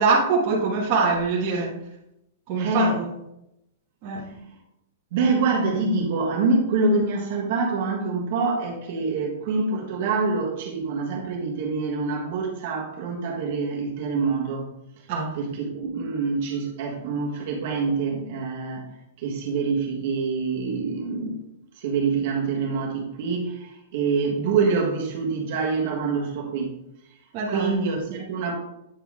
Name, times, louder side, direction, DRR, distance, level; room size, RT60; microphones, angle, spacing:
voice 1, 0.0-1.7 2.5-3.1 4.0-4.3 15.1-15.3 27.3-27.7, right 4 dB, 30° right, -5 dB, 1.4 m, -23 dB
voice 2, 2.5-3.0 5.1-14.7 15.3-18.9 19.2-21.4 21.8-26.8 27.5-28.5, right 4 dB, 45° right, -1 dB, 1.5 m, -25 dB
8.8 x 4.2 x 3.6 m, 0.84 s
supercardioid pair, 170°, 0 cm